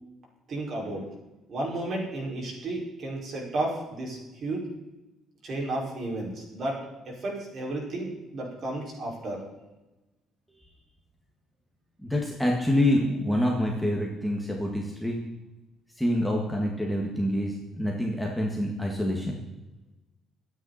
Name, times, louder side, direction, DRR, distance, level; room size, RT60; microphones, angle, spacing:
voice 1, 0.5-1.0 1.5-4.7 5.4-9.4, right 2 dB, 40° right, -2 dB, 5.3 m, -33 dB
voice 2, 12.0-15.2 16.0-19.4, left 1 dB, ahead, -2 dB, 1.8 m, -26 dB
24.5 x 9.4 x 4.3 m, 1.0 s
cardioid pair, 175°, 0 cm